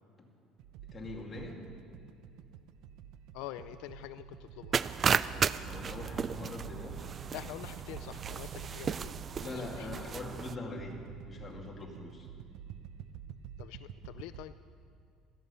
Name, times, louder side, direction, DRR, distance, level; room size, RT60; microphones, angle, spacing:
sound 1, 0.6-14.5, right 8 dB, 65° right, 0.7 m, -49 dB
voice 1, 0.9-1.7 5.3-7.1 9.4-11.0 11.3-12.3, left 2 dB, 20° left, 0 dB, 2.3 m, -43 dB
voice 2, 3.3-4.8 7.3-9.9 13.6-14.6, left 14 dB, 80° left, 13 dB, 0.4 m, -46 dB
sound 2, 4.7-10.5, right 6 dB, 30° right, 0.3 m, -34 dB
17.0 x 13.5 x 5.6 m, 2.4 s
cardioid pair, 155°, 0 cm